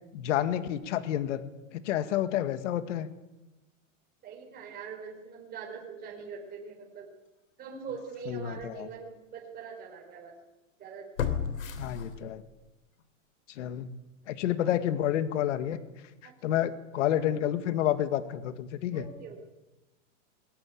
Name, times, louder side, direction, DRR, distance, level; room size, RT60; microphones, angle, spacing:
voice 1, 0.1-1.4 1.7-3.1 8.3-8.9 11.8-12.4 13.5-13.9 14.3-15.8 16.4-19.1, left 11 dB, 65° left, 11 dB, 2.0 m, -29 dB
voice 2, 4.2-7.1 7.6-10.4 10.8-11.1 16.2-16.6 18.9-19.4, right 6 dB, 20° right, -1 dB, 4.4 m, -43 dB
sound 1, 7.9-8.0 8.6-8.7 11.2-12.6 13.0-13.1, left 7 dB, 85° left, 3.6 m, -33 dB
21.5 x 18.5 x 8.6 m, 1.0 s
supercardioid pair, 145°, 40 cm